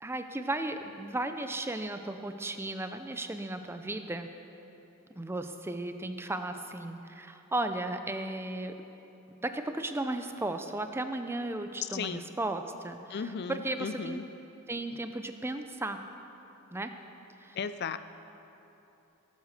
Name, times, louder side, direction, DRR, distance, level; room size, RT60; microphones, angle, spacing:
voice 1, 0.0-4.3 5.2-8.8 9.4-14.2 14.7-16.0 16.7-16.9 17.4-17.6, right 2 dB, 10° right, 7 dB, 0.5 m, -35 dB
voice 2, 11.7-12.2 13.1-14.2 17.6-18.0, left 6 dB, 50° left, 12 dB, 0.4 m, -35 dB
18.0 x 8.2 x 6.6 m, 3.0 s
head